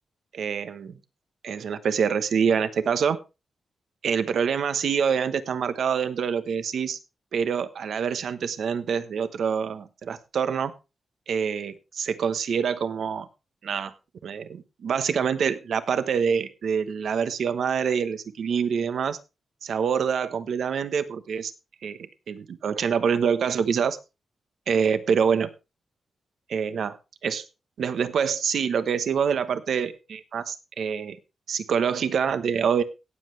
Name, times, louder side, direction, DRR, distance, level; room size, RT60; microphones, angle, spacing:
voice 1, 0.3-1.0 1.4-3.2 4.0-7.0 7.3-10.7 11.3-13.3 13.6-13.9 14.2-19.2 19.6-21.5 21.8-24.0 24.7-25.5 26.5-27.0 27.2-27.4 27.8-31.2 31.5-32.8, right 7 dB, 70° right, 12 dB, 1.1 m, -26 dB
17.5 x 7.7 x 3.3 m, 0.27 s
wide cardioid pair, 155°, 0 cm